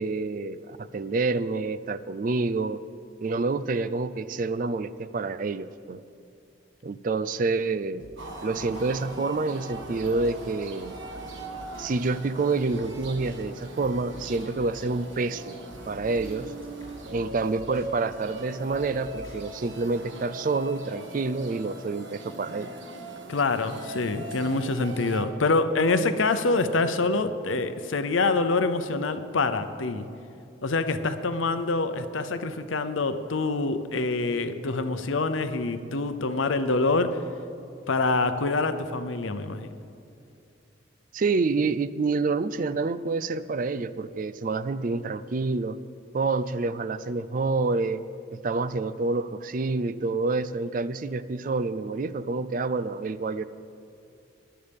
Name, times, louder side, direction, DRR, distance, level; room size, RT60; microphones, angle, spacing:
voice 1, 0.0-2.8 3.2-6.0 6.8-8.1 8.4-11.0 11.8-15.6 15.9-16.5 17.1-22.7 41.1-45.8 46.1-48.0 48.3-53.4, right 3 dB, 45° right, 15 dB, 0.4 m, -28 dB
sound 1, 8.0-20.0, equal, 20° left, 3.0 m, -48 dB
sound 2, 8.2-25.2, right 2 dB, 70° right, 1.4 m, -40 dB
voice 2, 23.3-30.1 30.6-37.2 37.9-39.7, left 3 dB, 85° left, 11 dB, 0.7 m, -26 dB
20.5 x 11.5 x 3.6 m, 2.6 s
head